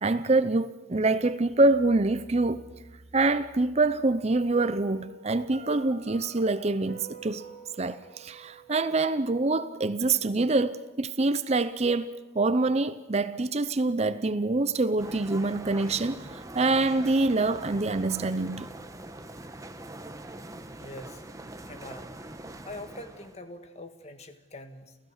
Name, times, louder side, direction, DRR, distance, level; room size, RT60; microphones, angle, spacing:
voice 1, 0.0-2.6 3.1-7.4 7.8-18.7, right 2 dB, 35° right, 0.6 m, -25 dB
Piano, 4.7-9.7, right 3 dB, 55° right, 3.1 m, -48 dB
sound 1, 15.0-23.4, right 1 dB, 15° right, 1.1 m, -43 dB
voice 2, 20.8-22.3 22.6-25.0, left 1 dB, 35° left, 1.6 m, -44 dB
29.5 x 15.5 x 6.5 m
head